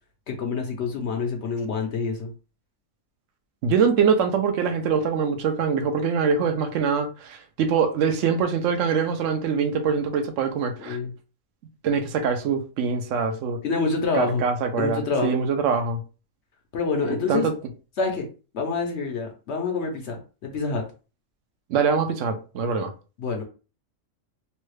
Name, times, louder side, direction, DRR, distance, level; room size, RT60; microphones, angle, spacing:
voice 1, 0.3-2.3 10.8-11.1 13.6-14.4 14.7-15.5 16.7-17.5 18.0-18.3 18.5-20.8 23.2-23.4, left 4 dB, 60° left, 0.8 m, -27 dB
voice 2, 3.6-11.0 11.8-13.6 14.1-16.0 17.1-17.5 21.7-22.9, right 6 dB, 65° right, 0.9 m, -24 dB
3.1 x 2.2 x 3.2 m
omnidirectional pair, 1.6 m